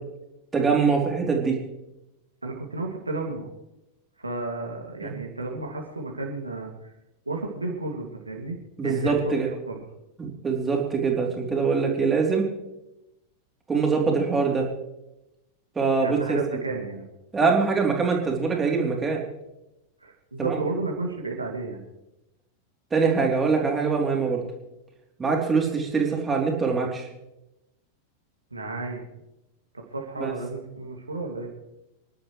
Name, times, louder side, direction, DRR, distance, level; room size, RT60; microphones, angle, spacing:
voice 1, 0.5-1.5 5.0-5.1 8.8-9.5 10.2-12.5 13.7-14.7 15.8-16.4 17.3-19.2 20.4-20.5 22.9-24.4 25.2-27.1 30.2-30.3, right 5 dB, 15° right, 0 dB, 3.5 m, -23 dB
voice 2, 2.4-3.5 4.2-6.7 7.3-8.6 8.8-9.3 9.7-9.8 16.0-17.0 20.0-21.8 28.5-29.0 29.9-31.5, right 2 dB, 80° right, 0 dB, 2.5 m, -32 dB
27.5 x 11.5 x 3.3 m, 0.92 s
figure-of-eight pair, 90°, 0 cm